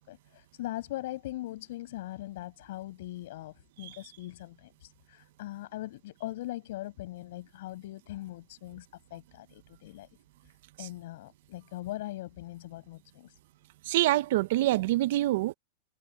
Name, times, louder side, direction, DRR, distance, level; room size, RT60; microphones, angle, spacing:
voice 1, 0.0-10.1 10.8-13.4, left 16 dB, 65° left, 6.1 m, -41 dB
voice 2, 13.9-15.5, right 16 dB, 65° right, 1.0 m, -26 dB
hypercardioid pair, 125°, 0 cm